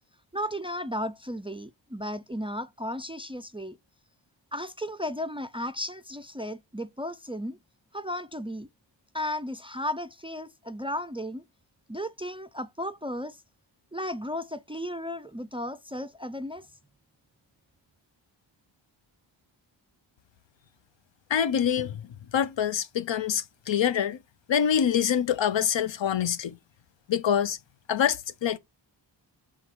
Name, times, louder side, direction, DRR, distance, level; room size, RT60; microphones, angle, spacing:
voice 1, 0.3-3.8 4.5-7.6 7.9-8.7 9.1-11.4 11.9-13.4 13.9-16.7, left 1 dB, 15° right, 0.4 m, -34 dB
voice 2, 21.3-22.0 22.3-24.2 24.5-26.5 27.1-27.6 27.9-28.6, left 8 dB, 70° left, 0.7 m, -25 dB
5.8 x 3.8 x 4.6 m
wide cardioid pair, 100°, 46 cm